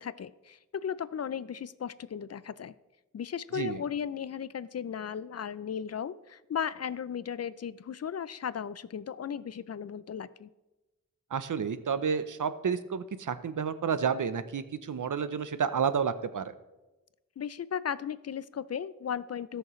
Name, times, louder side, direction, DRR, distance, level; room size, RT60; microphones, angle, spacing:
voice 1, 0.0-2.7 3.1-10.5 17.4-19.6, left 8 dB, 55° left, 17 dB, 0.4 m, -36 dB
voice 2, 11.3-16.5, right 6 dB, 70° right, 12 dB, 0.7 m, -30 dB
18.5 x 6.4 x 3.1 m, 1.0 s
wide cardioid pair, 85°, 32 cm